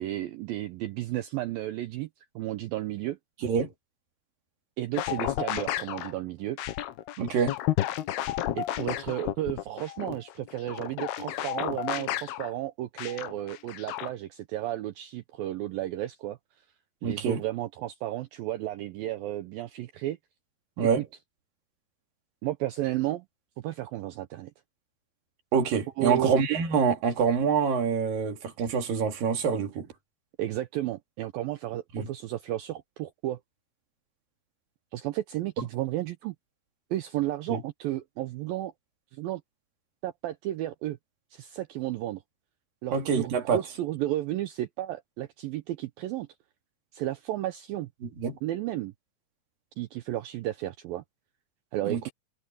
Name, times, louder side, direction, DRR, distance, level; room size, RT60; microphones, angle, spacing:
voice 1, 0.0-2.1 2.4-3.2 4.8-6.6 8.5-16.4 17.0-20.2 20.8-21.1 22.4-23.3 23.6-24.5 26.0-26.3 30.4-33.4 34.9-36.3 36.9-38.7 39.1-39.4 40.0-41.0 41.3-42.2 42.8-46.3 46.9-47.9 48.4-48.9 49.8-51.0 51.7-52.1, right 14 dB, 85° right, 2.1 m, -33 dB
voice 2, 3.4-3.7 7.2-7.6 17.0-17.4 20.8-21.0 25.5-29.9 31.9-32.1 35.6-35.7 37.5-37.6 42.9-43.6 48.0-48.4 51.8-52.1, right 6 dB, 55° right, 4.2 m, -26 dB
sound 1, 4.9-6.1 6.6-12.5 13.0-14.1, left 13 dB, 70° left, 3.0 m, -32 dB
omnidirectional pair, 5.0 m